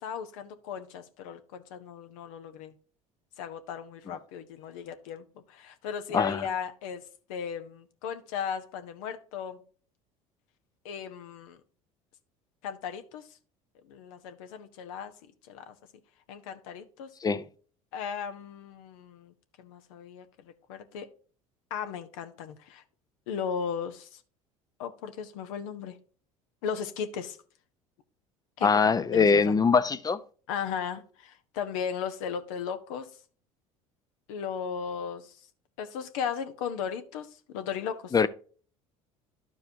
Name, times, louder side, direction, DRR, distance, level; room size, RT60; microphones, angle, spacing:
voice 1, 0.0-2.7 3.4-7.0 7.3-9.6 10.8-11.6 12.6-13.2 13.9-15.1 15.5-15.7 16.3-17.1 17.9-21.1 21.7-22.8 23.3-24.2 24.8-26.0 26.6-27.4 28.6-28.8 29.1-29.5 30.5-33.1 34.3-35.3 35.8-38.1, left 7 dB, 75° left, 0.9 m, -36 dB
voice 2, 6.1-6.4 17.2-17.5 28.6-30.2 38.1-38.3, left 5 dB, 20° left, 0.5 m, -22 dB
12.5 x 4.7 x 2.7 m
hypercardioid pair, 70°, 18 cm